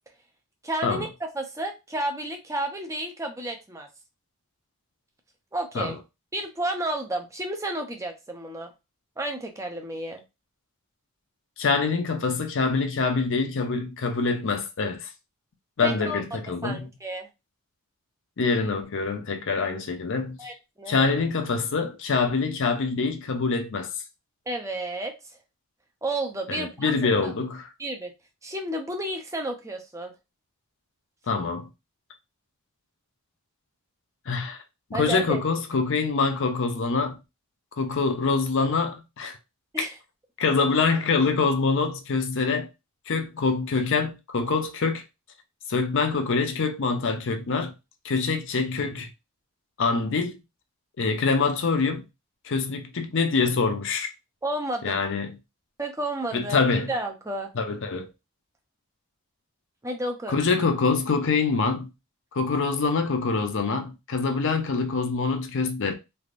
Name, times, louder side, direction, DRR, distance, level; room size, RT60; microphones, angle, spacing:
voice 1, 0.6-3.9 5.5-6.0 6.3-8.7 9.2-10.2 15.8-16.2 16.6-17.3 20.4-21.1 24.5-25.1 26.0-27.0 27.2-27.3 27.8-28.1 28.4-30.1 34.9-35.4 39.7-39.9 54.4-55.1 55.8-56.6 56.9-57.5 59.8-60.4, right 1 dB, 15° right, 0.5 m, -31 dB
voice 2, 11.6-15.1 15.8-16.9 18.4-20.5 20.9-23.9 26.5-27.7 31.3-31.7 34.3-34.6 34.9-37.2 37.8-39.4 40.4-42.7 43.1-45.0 45.7-47.7 48.0-49.1 49.8-50.4 51.0-52.0 52.4-54.1 54.8-55.3 56.3-56.9 57.6-58.1 60.3-61.9 62.3-65.9, left 4 dB, 55° left, 0.5 m, -25 dB
3.4 x 2.5 x 2.5 m
head